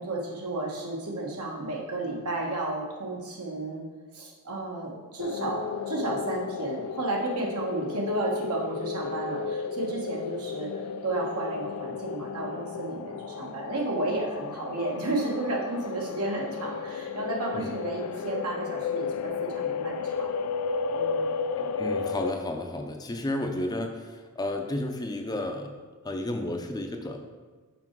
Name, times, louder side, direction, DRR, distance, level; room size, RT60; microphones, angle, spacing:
voice 1, 0.0-3.8 4.1-20.3 20.9-21.4, right 2 dB, 80° right, -1 dB, 1.4 m, -32 dB
sound 1, 5.2-22.3, left 5 dB, 85° left, 0.3 m, -33 dB
voice 2, 21.6-25.7 26.0-27.2, left 1 dB, 20° left, 4 dB, 0.4 m, -32 dB
5.9 x 4.9 x 4.5 m, 1.4 s
head